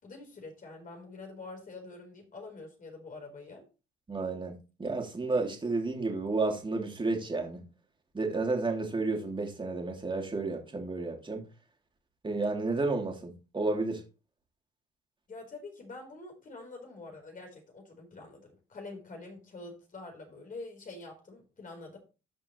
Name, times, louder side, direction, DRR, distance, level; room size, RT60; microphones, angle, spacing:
voice 1, 0.0-3.6 15.3-22.0, left 3 dB, 45° left, 4.2 m, -46 dB
voice 2, 4.1-7.6 8.1-11.4 12.2-14.0, right 3 dB, 25° right, 3.1 m, -31 dB
12.0 x 5.8 x 3.2 m
cardioid pair, 90°, 20 cm